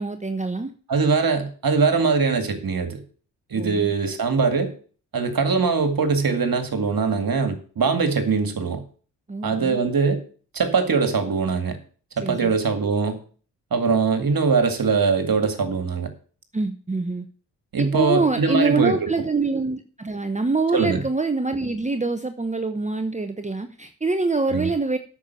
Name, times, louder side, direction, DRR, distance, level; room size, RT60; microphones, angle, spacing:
voice 1, 0.0-0.7 3.5-3.9 9.3-9.8 12.2-12.5 16.5-17.3 17.8-25.0, right 3 dB, 15° right, 7 dB, 1.0 m, -25 dB
voice 2, 0.9-3.0 3.5-4.7 5.1-8.8 9.4-10.2 10.5-11.8 12.2-13.2 13.7-16.1 17.7-19.1 20.7-21.0 24.5-24.7, right 4 dB, 45° right, 7 dB, 2.2 m, -22 dB
8.5 x 7.1 x 6.9 m, 0.41 s
hypercardioid pair, 45°, 47 cm